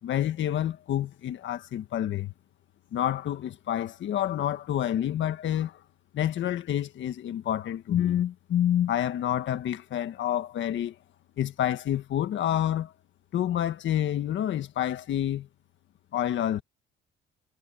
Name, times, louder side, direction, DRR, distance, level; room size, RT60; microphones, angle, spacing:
voice 1, 0.0-2.3 2.9-5.8 6.1-10.9 11.4-12.9 13.3-15.5 16.1-16.6, left 11 dB, 75° left, 1.7 m, -28 dB
cardioid pair, 90°, 20 cm